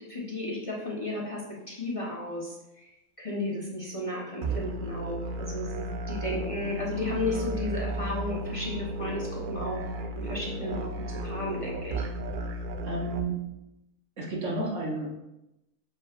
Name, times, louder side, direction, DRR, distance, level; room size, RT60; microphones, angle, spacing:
voice 1, 0.1-2.9 3.2-9.8 10.2-12.0, left 2 dB, 25° left, -4 dB, 1.1 m, -34 dB
sound 1, 4.4-13.2, right 2 dB, 80° right, 0.4 m, -34 dB
voice 2, 12.8-13.5 14.2-15.1, right 2 dB, 60° right, -2 dB, 1.5 m, -31 dB
7.2 x 6.5 x 2.5 m, 0.93 s
omnidirectional pair, 1.5 m